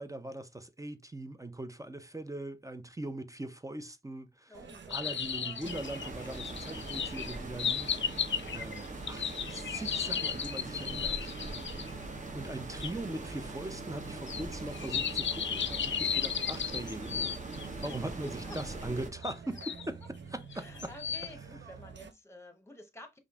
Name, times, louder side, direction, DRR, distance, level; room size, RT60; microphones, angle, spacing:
voice 1, 0.0-4.6 4.9-8.0 8.5-11.3 12.3-20.9, right 1 dB, 15° right, 0.4 m, -41 dB
voice 2, 4.5-5.2 8.8-8.9 11.7-12.1 17.8-18.6 20.5-23.2, left 1 dB, 15° left, 0.8 m, -50 dB
sound 1, 4.5-22.1, right 5 dB, 70° right, 0.5 m, -49 dB
sound 2, 4.9-11.9 12.8-12.9 14.3-18.0 18.5-18.6 19.2-19.8 20.5-21.3, left 8 dB, 70° left, 0.4 m, -35 dB
sound 3, 5.6-19.1, right 2 dB, 40° right, 0.8 m, -42 dB
5.1 x 2.5 x 2.3 m
wide cardioid pair, 100°, 20 cm